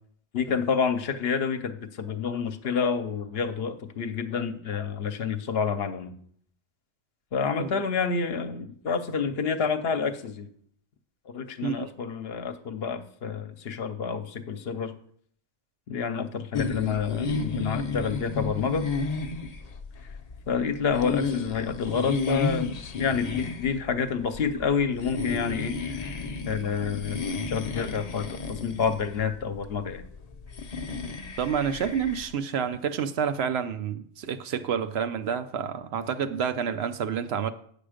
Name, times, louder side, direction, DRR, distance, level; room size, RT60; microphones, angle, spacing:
voice 1, 0.3-6.1 7.3-10.5 11.3-14.9 15.9-18.8 20.5-26.1 26.5-30.0, left 6 dB, 65° left, 0.9 m, -28 dB
sound 1, 16.5-32.3, left 4 dB, 40° left, 0.7 m, -33 dB
voice 2, 31.4-37.5, right 7 dB, 70° right, 0.9 m, -29 dB
8.8 x 6.9 x 5.0 m
omnidirectional pair, 1.2 m